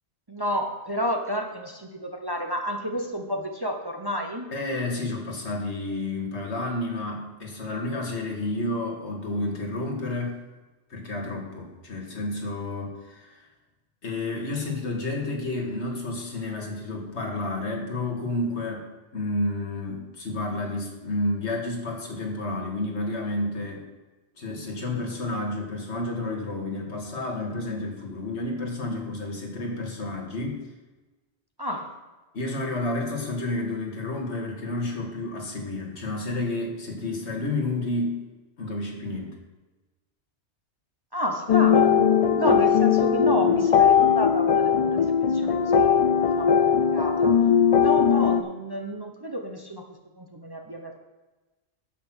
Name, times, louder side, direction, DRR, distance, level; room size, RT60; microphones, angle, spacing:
voice 1, 0.3-4.6 31.6-32.0 41.1-42.0 42.3-46.1 46.4-47.4 47.7-49.8 50.2-51.0, equal, 25° right, 3 dB, 0.8 m, -31 dB
voice 2, 4.5-10.4 10.9-13.5 14.0-18.9 19.1-23.9 24.4-30.6 32.3-38.2 38.6-39.4, left 2 dB, 70° left, 1 dB, 2.0 m, -30 dB
sound 1, 41.5-48.4, left 7 dB, 55° left, 0.4 m, -19 dB
8.2 x 7.7 x 6.2 m, 1.2 s
omnidirectional pair, 1.2 m